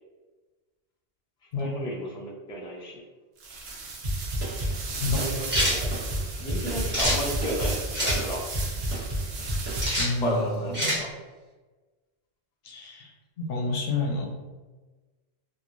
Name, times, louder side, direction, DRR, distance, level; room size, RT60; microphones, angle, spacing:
voice 1, 1.6-3.0 5.2-5.8 6.4-8.4 10.0-10.7 11.0-11.1, equal, 10° left, -4 dB, 0.3 m, -32 dB
sound 1, 3.4-10.3, right 3 dB, 75° right, 0.9 m, -36 dB
sound 2, 4.0-10.4, equal, 50° right, 1.1 m, -31 dB
sound 3, 5.5-5.8 6.9-7.2 7.9-8.2 9.8-10.1 10.7-11.0, equal, 10° right, 0.9 m, -25 dB
voice 2, 10.0-11.0 12.6-13.1 13.4-14.3, left 3 dB, 75° left, 1 dB, 0.8 m, -29 dB
3.0 x 2.6 x 2.5 m, 1.3 s
omnidirectional pair, 1.1 m